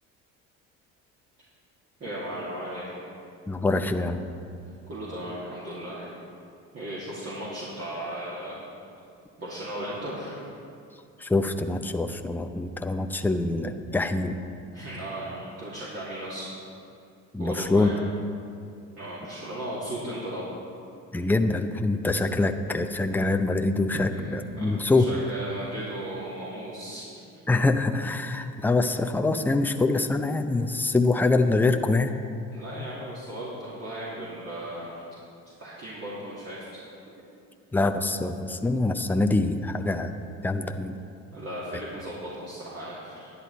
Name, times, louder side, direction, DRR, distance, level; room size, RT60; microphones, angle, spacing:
voice 1, 2.0-3.0 4.9-6.2 6.7-8.6 9.4-10.4 14.7-16.5 17.4-17.9 19.0-20.5 24.1-24.2 24.6-27.1 32.5-35.0 35.6-37.1 41.3-43.3, right 1 dB, 40° right, -8 dB, 2.7 m, -36 dB
voice 2, 3.5-4.2 11.2-14.4 17.3-17.9 21.1-25.1 27.5-32.1 37.7-40.1 40.4-41.0, left 2 dB, 5° left, 6 dB, 0.6 m, -25 dB
11.0 x 9.9 x 4.2 m, 2.5 s
supercardioid pair, 70°, 36 cm